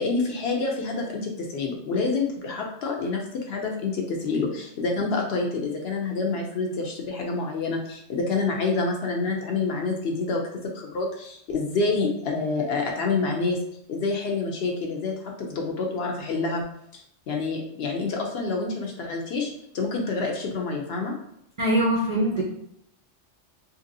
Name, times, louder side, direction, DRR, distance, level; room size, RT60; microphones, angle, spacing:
voice 1, 0.0-10.4 10.7-13.6 13.9-16.6 16.9-17.0 17.3-19.5 19.7-21.2, left 3 dB, 65° left, 1 dB, 0.7 m, -27 dB
voice 2, 21.6-22.4, right 1 dB, 65° right, -3 dB, 0.3 m, -22 dB
2.9 x 2.6 x 2.6 m, 0.75 s
omnidirectional pair, 1.3 m